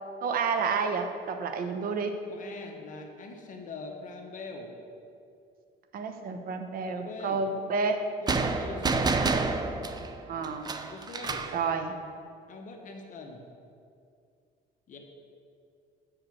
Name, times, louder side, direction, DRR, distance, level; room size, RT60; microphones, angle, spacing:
voice 1, 0.2-2.2 5.9-8.0 10.3-10.7 11.5-11.9, right 5 dB, 60° right, 6 dB, 1.0 m, -30 dB
voice 2, 2.3-4.8 6.9-7.4 8.2-9.2 10.9-11.5 12.5-13.4 14.9-15.0, left 3 dB, 50° left, 3 dB, 1.2 m, -42 dB
sound 1, 8.3-11.6, right 4 dB, 25° right, 0.6 m, -29 dB
8.0 x 5.9 x 7.6 m, 2.4 s
cardioid pair, 110°, 17 cm